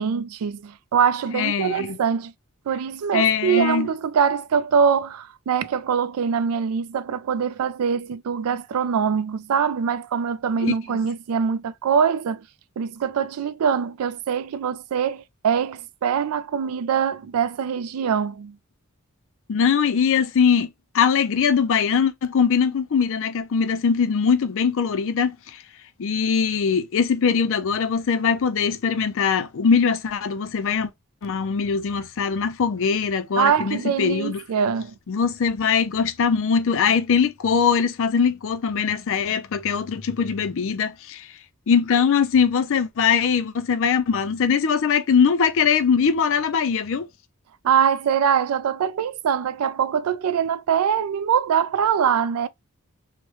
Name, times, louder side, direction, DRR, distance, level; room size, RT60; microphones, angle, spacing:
voice 1, 0.0-2.3 2.7-12.4 12.8-18.6 33.4-34.9 47.6-52.5, right 7 dB, 75° right, 0.3 m, -23 dB
voice 2, 1.3-2.0 3.1-3.9 10.6-11.0 19.5-20.7 20.9-25.6 26.0-30.9 31.2-34.4 35.1-41.3 41.7-47.1, left 6 dB, 65° left, 0.4 m, -21 dB
3.1 x 2.1 x 3.0 m
head